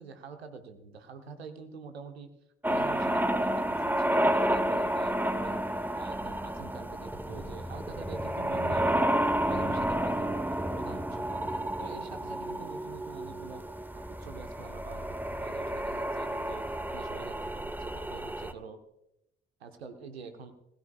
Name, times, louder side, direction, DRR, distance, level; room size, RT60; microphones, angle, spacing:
voice 1, 0.0-2.3 2.7-5.6 6.0-13.6 13.9-16.6 16.9-18.8 19.6-20.5, right 5 dB, 90° right, 7 dB, 1.1 m, -46 dB
sound 1, 2.6-18.5, right 1 dB, 5° right, 1.1 m, -31 dB
19.5 x 13.5 x 2.4 m, 0.84 s
figure-of-eight pair, 40°, 31 cm